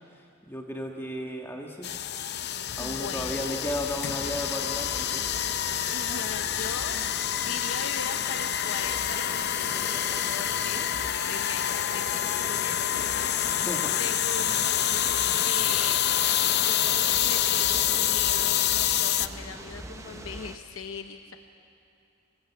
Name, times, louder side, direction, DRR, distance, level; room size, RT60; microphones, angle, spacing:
voice 1, 0.5-2.0 2.8-5.3 13.6-14.0, left 1 dB, 10° left, 1 dB, 1.5 m, -34 dB
sound 1, 1.8-19.3, left 11 dB, 50° left, 0.6 m, -27 dB
voice 2, 2.8-3.4 5.9-13.7 14.0-14.8 15.4-16.0 16.4-21.4, left 5 dB, 70° left, 6 dB, 0.9 m, -39 dB
sound 2, 2.8-20.6, right 1 dB, 15° right, 0.9 m, -42 dB
26.0 x 20.0 x 8.2 m, 2.6 s
head